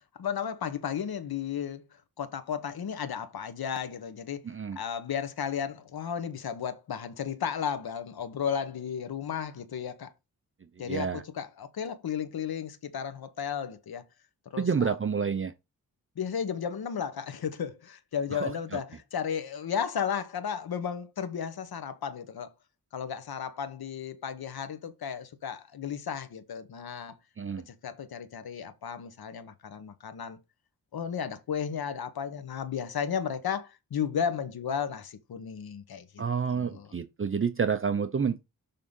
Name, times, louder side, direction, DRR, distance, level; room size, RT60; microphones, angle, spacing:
voice 1, 0.2-1.8 2.2-4.5 4.8-10.1 10.8-14.0 14.5-15.0 16.2-22.5 22.9-27.1 27.7-30.4 30.9-36.2 36.5-36.9, left 7 dB, 75° left, 1.1 m, -34 dB
voice 2, 4.4-4.8 10.9-11.2 14.6-15.5 18.3-18.8 27.4-27.7 36.2-38.4, right 6 dB, 35° right, 0.7 m, -29 dB
6.8 x 3.7 x 5.4 m
wide cardioid pair, 80°, 37 cm